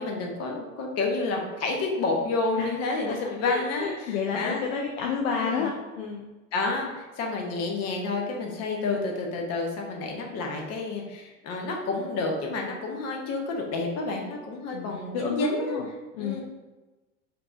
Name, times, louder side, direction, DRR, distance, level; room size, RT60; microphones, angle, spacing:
voice 1, 0.0-4.6 5.4-5.7 6.5-15.8 16.2-16.4, left 3 dB, 40° left, 1 dB, 0.9 m, -29 dB
voice 2, 3.4-6.2 14.7-15.9 16.1-16.4, left 6 dB, 55° left, 1 dB, 0.6 m, -30 dB
4.5 x 2.7 x 2.5 m, 1.1 s
figure-of-eight pair, 75°, 41 cm